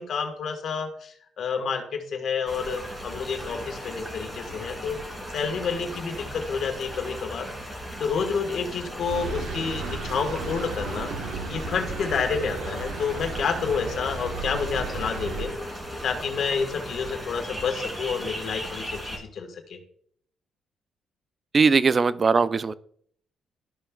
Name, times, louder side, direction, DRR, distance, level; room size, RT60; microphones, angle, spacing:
voice 1, 0.0-5.0 5.3-7.5 8.0-11.1 11.5-15.5 16.0-19.8, left 5 dB, 65° left, 5 dB, 1.4 m, -29 dB
sound 1, 2.5-19.2, equal, 10° right, 2.5 m, -37 dB
sound 2, 9.1-15.5, right 4 dB, 80° right, 1.3 m, -34 dB
voice 2, 21.5-22.7, right 5 dB, 35° right, 16 dB, 0.4 m, -20 dB
12.5 x 5.2 x 2.3 m, 0.63 s
cardioid pair, 90°, 0 cm